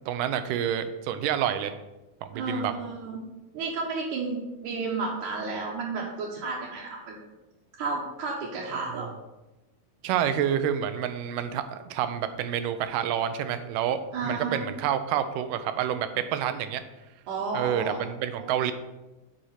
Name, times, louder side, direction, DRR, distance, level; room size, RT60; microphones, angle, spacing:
voice 1, 0.1-1.8 2.2-2.7 10.0-16.8 17.5-18.7, right 9 dB, 90° right, 10 dB, 2.2 m, -28 dB
voice 2, 2.3-3.2 3.5-7.3 7.8-9.1 14.1-14.7 17.3-18.0 18.4-18.5, right 4 dB, 70° right, -4 dB, 2.4 m, -32 dB
7.7 x 4.3 x 6.5 m, 1.0 s
omnidirectional pair, 3.8 m